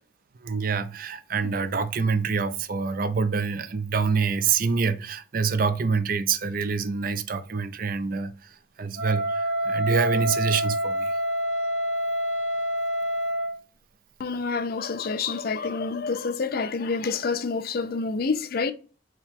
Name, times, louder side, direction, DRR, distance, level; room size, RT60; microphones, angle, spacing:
voice 1, 0.4-11.2, right 5 dB, 45° right, 0.4 m, -26 dB
Wind instrument woodwind instrument, 9.0-13.6, equal, 90° right, 1.4 m, -27 dB
voice 2, 14.2-18.7, left 4 dB, 50° left, 0.4 m, -28 dB
4.5 x 2.9 x 3.6 m
head